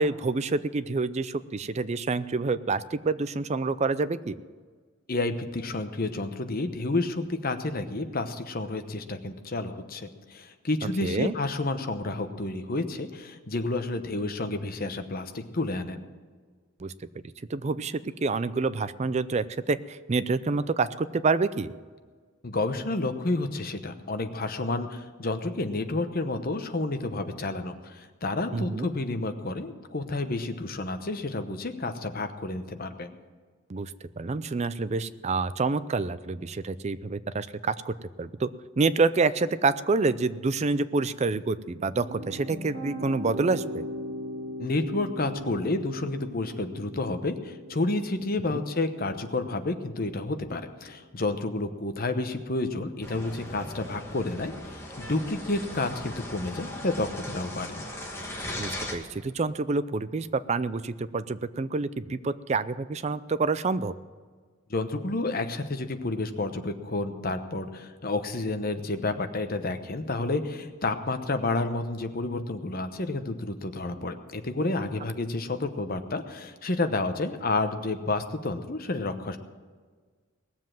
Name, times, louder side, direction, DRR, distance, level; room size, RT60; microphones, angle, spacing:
voice 1, 0.0-4.4 11.0-11.3 16.8-16.9 17.5-21.7 28.5-28.9 33.7-38.5 38.8-43.8 48.5-48.6 58.6-63.9, right 3 dB, 30° right, 14 dB, 0.4 m, -27 dB
voice 2, 5.1-16.0 22.4-33.1 44.6-57.8 64.7-79.4, left 2 dB, 45° left, 8 dB, 0.9 m, -30 dB
sound 1, 41.6-50.7, equal, 50° right, 2.5 m, -40 dB
sound 2, 53.0-58.9, left 1 dB, 10° left, 1.7 m, -38 dB
19.0 x 7.4 x 7.6 m, 1.5 s
head